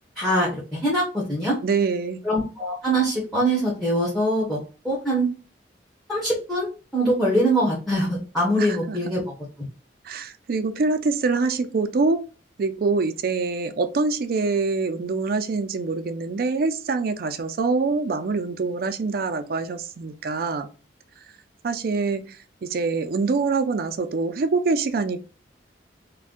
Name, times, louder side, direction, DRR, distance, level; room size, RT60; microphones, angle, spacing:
voice 1, 0.2-1.6 2.2-4.6 4.8-5.3 6.1-9.2, right 1 dB, ahead, 0.7 m, -23 dB
voice 2, 1.6-2.2 8.6-9.0 10.0-12.2 12.6-20.7 21.6-25.2, right 4 dB, 55° right, 0.4 m, -25 dB
2.5 x 2.2 x 3.5 m
head